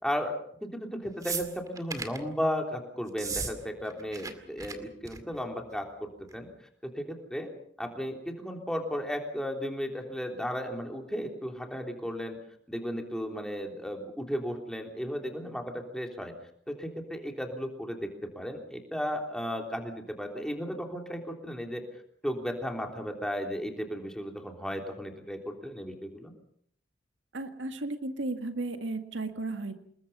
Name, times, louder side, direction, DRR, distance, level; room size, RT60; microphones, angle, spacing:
voice 1, 0.0-7.5 7.8-12.4 12.7-16.3 16.7-21.8 22.2-26.3, equal, 5° left, 2 dB, 3.4 m, -35 dB
sound 1, 1.2-2.2 3.1-3.5 3.8-4.3 4.6-4.7 5.0-5.4 6.3-6.4, right 4 dB, 20° right, 2.2 m, -35 dB
voice 2, 27.3-29.7, right 2 dB, 85° right, 7 dB, 2.0 m, -34 dB
28.0 x 21.0 x 5.6 m, 0.64 s
head